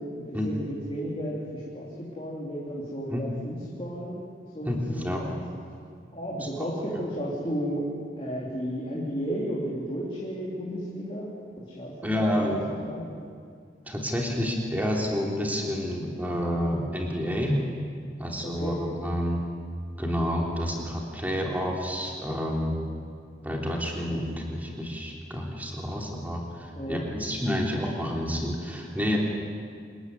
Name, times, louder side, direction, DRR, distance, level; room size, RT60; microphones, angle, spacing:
voice 1, 0.0-4.3 4.5-5.5 6.1-7.9 8.2-11.3 11.6-12.6 12.9-13.1 18.4-18.8 24.1-24.2 26.7-27.1, equal, 30° left, -6 dB, 3.4 m, -33 dB
voice 2, 4.6-5.2 6.4-6.5 12.0-12.7 13.9-17.6 18.2-19.4 20.0-22.8 23.4-29.2, equal, 10° right, -1 dB, 3.3 m, -29 dB
26.5 x 14.5 x 9.7 m, 2.2 s
head